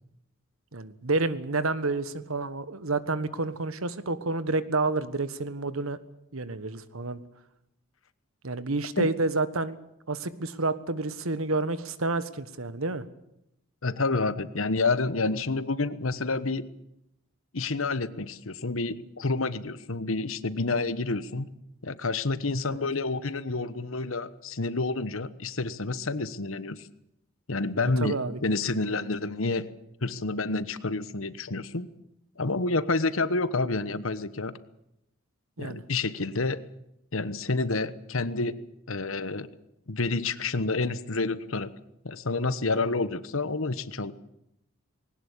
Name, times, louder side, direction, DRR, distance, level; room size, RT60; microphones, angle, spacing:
voice 1, 0.7-6.0 6.3-7.2 8.4-9.8 10.1-13.1 22.7-22.8 28.0-28.4 35.6-35.8, right 3 dB, 75° right, 14 dB, 1.4 m, -29 dB
voice 2, 13.8-16.7 17.5-21.5 21.8-26.9 27.5-29.7 30.0-31.9 32.4-34.6 35.6-36.6 37.1-38.6 38.9-39.5 39.9-41.7 42.0-44.1, left 3 dB, 70° left, 15 dB, 1.2 m, -29 dB
20.5 x 18.5 x 8.6 m, 0.81 s
head